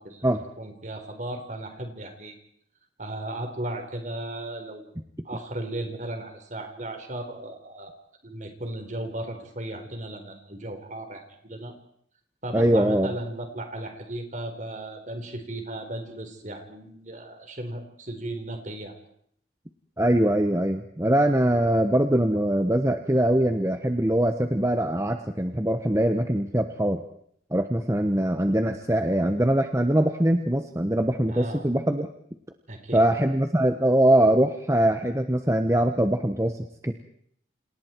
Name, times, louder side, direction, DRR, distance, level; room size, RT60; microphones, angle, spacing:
voice 1, 0.6-2.4 3.0-4.9 5.2-7.9 8.2-11.7 12.4-19.0 31.3-31.6 32.7-33.1, right 1 dB, 45° right, 6 dB, 4.2 m, -36 dB
voice 2, 12.5-13.1 20.0-27.0 27.5-32.1 32.9-36.9, right 1 dB, 15° right, 6 dB, 1.1 m, -22 dB
29.0 x 27.5 x 4.6 m, 0.66 s
head